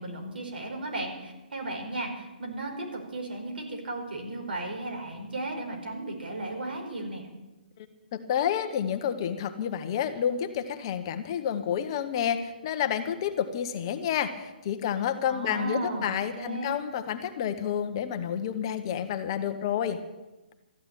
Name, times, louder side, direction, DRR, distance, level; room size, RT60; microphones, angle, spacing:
voice 1, 0.0-7.3 15.3-16.8, right 2 dB, 80° right, 2 dB, 5.1 m, -35 dB
voice 2, 8.1-20.0, left 9 dB, 30° left, 8 dB, 1.0 m, -29 dB
14.0 x 10.5 x 8.8 m, 1.1 s
hypercardioid pair, 170°, 5 cm